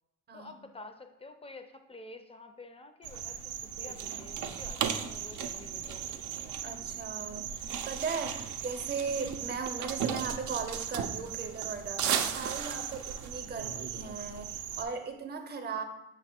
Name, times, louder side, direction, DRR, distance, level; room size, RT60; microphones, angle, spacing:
voice 1, 0.3-3.5 3.8-6.0 13.7-13.8, left 2 dB, 20° left, 7 dB, 0.4 m, -49 dB
sound 1, 3.0-14.8, right 8 dB, 70° right, 0.4 m, -36 dB
voice 2, 6.6-15.8, right 5 dB, 35° right, 6 dB, 0.6 m, -38 dB
5.5 x 2.0 x 4.3 m, 0.92 s
cardioid pair, 90°, 30 cm